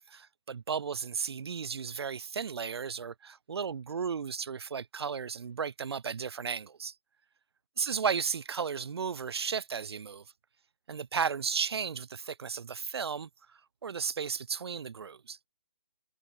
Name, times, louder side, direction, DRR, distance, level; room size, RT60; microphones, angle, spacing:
voice 1, 0.1-6.9 7.8-10.2 10.9-15.4, right 6 dB, 60° right, 0.8 m, -34 dB
figure-of-eight pair, 145°, 15 cm